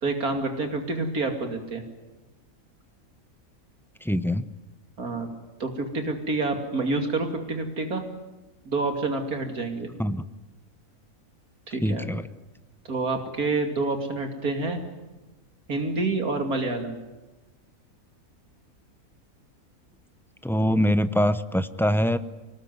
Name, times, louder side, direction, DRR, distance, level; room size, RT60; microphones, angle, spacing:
voice 1, 0.0-1.8 5.0-5.3 5.6-8.0 8.6-9.9 11.7-12.1 12.8-14.8 15.7-17.0, right 3 dB, 80° right, 5 dB, 3.2 m, -28 dB
voice 2, 4.0-4.4 10.0-10.2 11.8-12.3 20.4-22.2, equal, 5° left, 12 dB, 0.3 m, -23 dB
24.5 x 19.5 x 9.5 m, 1.1 s
omnidirectional pair, 1.6 m